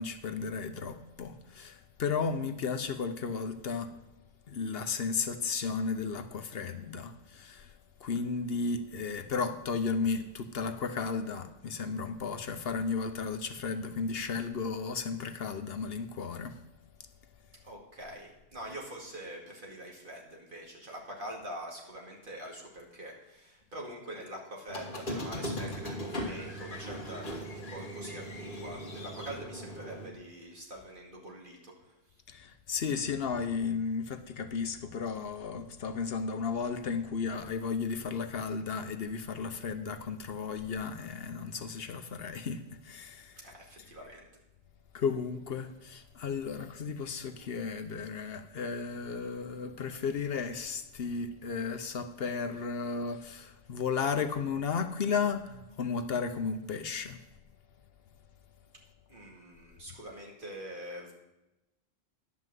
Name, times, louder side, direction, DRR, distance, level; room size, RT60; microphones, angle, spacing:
voice 1, 0.0-3.9 4.5-7.7 8.0-16.6 32.3-43.9 44.9-57.2, left 5 dB, 65° left, 0.9 m, -34 dB
voice 2, 17.6-32.0 43.4-44.3 59.1-61.1, right 1 dB, 50° right, 2.4 m, -44 dB
Squeak, 24.7-30.0, equal, 50° left, 2.0 m, -39 dB
11.0 x 5.7 x 7.6 m
omnidirectional pair, 1.1 m